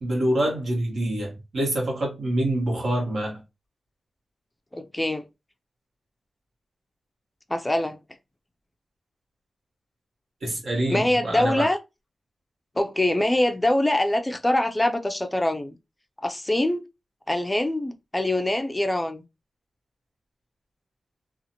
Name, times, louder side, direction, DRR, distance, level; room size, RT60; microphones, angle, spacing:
voice 1, 0.0-3.4 10.4-11.7, right 1 dB, 80° right, 1.3 m, -26 dB
voice 2, 4.7-5.2 7.5-8.0 10.9-11.8 12.8-15.8 16.2-16.8 17.3-19.2, left 1 dB, 10° left, 0.4 m, -24 dB
2.7 x 2.4 x 2.7 m
wide cardioid pair, 170°, 0 cm